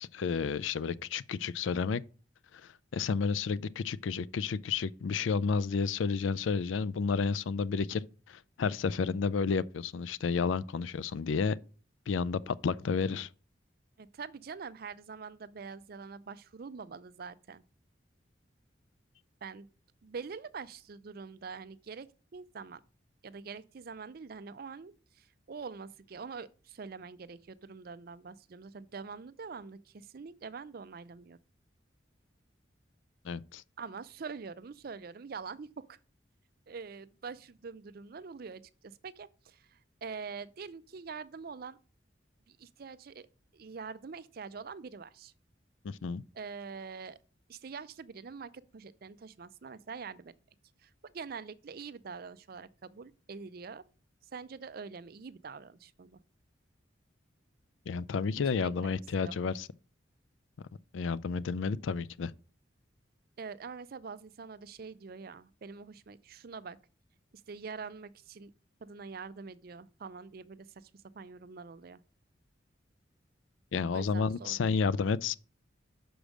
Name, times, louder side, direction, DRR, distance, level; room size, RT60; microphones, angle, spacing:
voice 1, 0.0-2.0 2.6-8.0 8.3-11.6 12.1-13.3 33.2-33.6 45.8-46.2 57.9-59.7 60.9-62.3 73.7-75.3, left 5 dB, 85° left, 0.4 m, -31 dB
voice 2, 14.0-17.6 19.4-19.7 20.0-22.8 23.2-31.4 33.8-36.0 36.7-41.8 42.5-43.3 43.5-45.3 46.3-47.2 47.5-50.3 50.8-53.8 54.3-56.2 58.5-59.4 63.4-66.8 67.5-68.5 68.8-72.0 73.9-74.9, right 5 dB, 50° right, 0.5 m, -45 dB
6.2 x 5.0 x 6.3 m
head